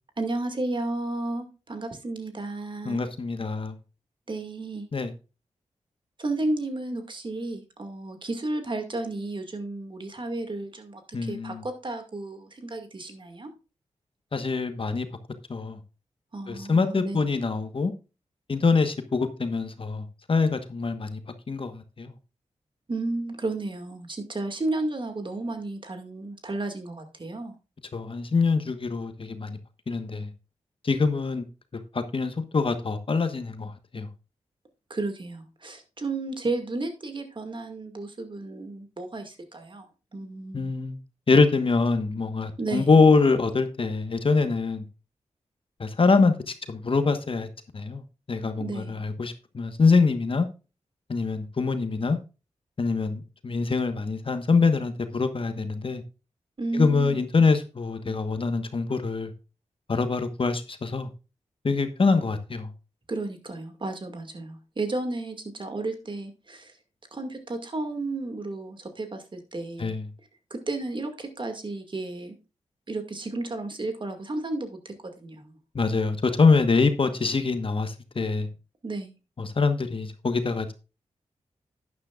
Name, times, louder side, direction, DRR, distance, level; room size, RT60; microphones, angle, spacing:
voice 1, 0.2-3.0 4.3-4.9 6.2-13.5 16.3-17.4 22.9-27.5 34.9-40.7 42.6-43.0 48.6-49.0 56.6-57.2 63.1-66.8 67.1-70.0 70.5-72.4 72.9-75.6 78.8-79.1, right 2 dB, 40° right, 2.1 m, -33 dB
voice 2, 2.8-3.8 4.9-5.1 11.1-11.6 14.3-15.1 15.5-15.8 16.5-17.9 18.5-21.2 21.5-22.1 27.9-29.6 29.9-30.3 30.8-31.4 31.9-34.1 40.5-41.0 41.3-44.8 45.8-47.5 47.7-48.0 48.3-50.5 51.1-52.2 52.8-56.0 56.7-59.3 59.9-61.1 61.6-62.7 69.8-70.0 75.7-78.5 79.4-80.7, left 4 dB, 50° left, 1.3 m, -24 dB
11.5 x 9.7 x 2.4 m
cardioid pair, 55°, 12 cm